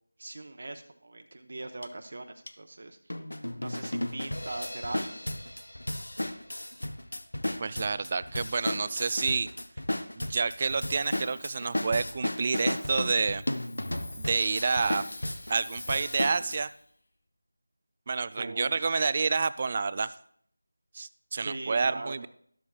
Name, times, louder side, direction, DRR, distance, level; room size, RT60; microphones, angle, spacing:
voice 1, 0.2-3.0 3.6-5.1 18.4-19.0 21.4-22.3, right 2 dB, 50° right, 6 dB, 0.9 m, -40 dB
sound 1, 1.8-1.9 2.5-2.6 3.1-16.6, left 1 dB, 85° left, 0.7 m, -34 dB
voice 2, 7.6-9.5 10.2-13.4 14.2-15.1 15.5-16.7 18.1-20.1 20.9-22.3, right 4 dB, 30° right, 16 dB, 0.3 m, -29 dB
Hiss, 10.6-16.9, left 2 dB, 50° left, 1.2 m, -49 dB
12.5 x 12.5 x 2.3 m, 0.63 s
figure-of-eight pair, 170°, 0 cm